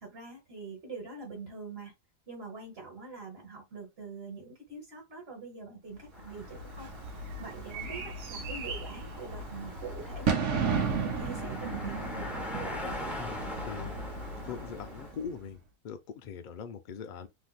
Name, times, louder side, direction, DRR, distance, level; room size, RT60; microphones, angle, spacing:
voice 1, 0.0-1.9 2.3-6.9 7.4-12.4, right 3 dB, 50° right, 1.3 m, -44 dB
sound 1, 6.1-15.1, left 1 dB, ahead, 0.3 m, -43 dB
Bird / Fireworks, 6.2-15.4, right 5 dB, 65° right, 1.0 m, -35 dB
voice 2, 13.2-14.0 14.4-15.6 15.8-17.3, left 7 dB, 70° left, 0.4 m, -41 dB
3.4 x 2.9 x 2.3 m
omnidirectional pair, 1.4 m